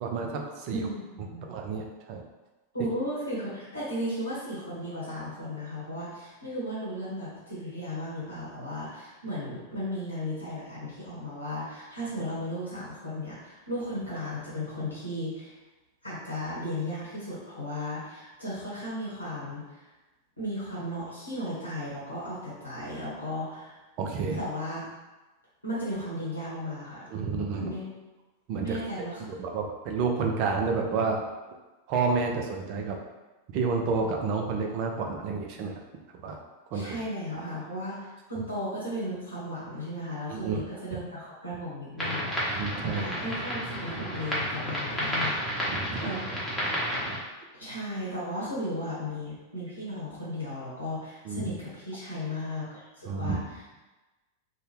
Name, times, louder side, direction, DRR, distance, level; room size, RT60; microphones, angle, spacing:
voice 1, 0.0-0.9 1.2-2.2 24.0-24.4 27.1-27.7 28.5-28.8 29.2-31.2 31.9-33.0 33.5-35.8 36.2-36.4 36.7-37.0 40.3-40.6 42.5-43.0 45.7-46.1 51.3-51.4 53.1-53.4, right 4 dB, 45° right, 2 dB, 0.4 m, -30 dB
voice 2, 0.7-1.5 2.7-15.5 16.0-19.9 20.4-23.8 24.3-24.9 25.6-27.1 27.5-27.9 28.6-29.2 36.7-46.2 47.6-53.8, left 1 dB, 85° left, -8 dB, 0.9 m, -35 dB
sound 1, 42.0-47.2, equal, 5° left, 0.9 m, -31 dB
2.7 x 2.1 x 3.1 m, 1.1 s
figure-of-eight pair, 90°, 0 cm